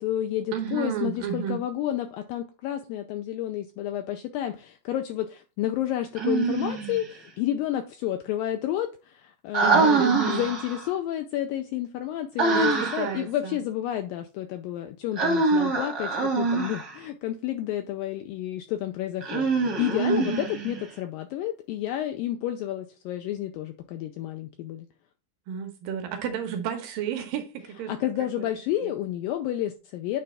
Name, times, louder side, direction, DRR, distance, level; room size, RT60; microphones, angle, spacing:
voice 1, 0.0-9.9 10.3-24.9 27.9-30.2, left 12 dB, 90° left, 2.0 m, -30 dB
voice 2, 0.5-1.6 9.6-10.4 12.5-13.6 20.1-20.5 25.5-27.9 28.8-28.9, right 8 dB, 70° right, 2.3 m, -31 dB
Human voice, 6.2-7.0 9.5-10.9 12.4-13.2 15.2-17.0 19.2-20.8, right 3 dB, 50° right, 1.1 m, -24 dB
9.3 x 3.3 x 4.2 m
omnidirectional pair, 4.6 m